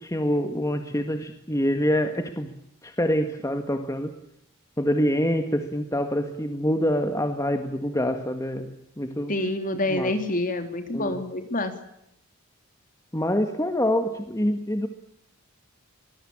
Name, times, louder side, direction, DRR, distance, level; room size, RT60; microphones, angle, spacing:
voice 1, 0.0-2.6 2.8-4.2 4.8-9.3 9.9-10.1 10.9-11.2 13.1-14.9, equal, 15° left, 6 dB, 1.7 m, -26 dB
voice 2, 9.3-11.7, left 2 dB, 40° left, 7 dB, 3.3 m, -27 dB
24.5 x 20.5 x 8.8 m, 0.79 s
head